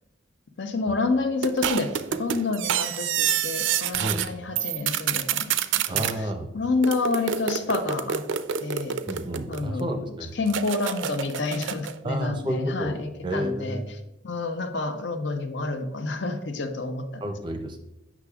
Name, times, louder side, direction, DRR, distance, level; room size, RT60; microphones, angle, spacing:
voice 1, 0.6-5.5 5.9-6.3 6.5-8.2 8.6-9.0 9.5-10.0 10.3-13.8 14.2-17.2, left 3 dB, 70° left, 7 dB, 0.7 m, -28 dB
sound 1, 1.4-4.3 4.6-6.1 6.8-9.8 10.5-12.0, right 9 dB, 80° right, 0.4 m, -28 dB
voice 2, 4.0-4.3 5.9-6.5 9.1-10.3 12.0-13.0 13.2-13.9 17.2-17.8, right 1 dB, 25° right, 4 dB, 0.5 m, -30 dB
8.2 x 5.9 x 2.3 m, 0.96 s
head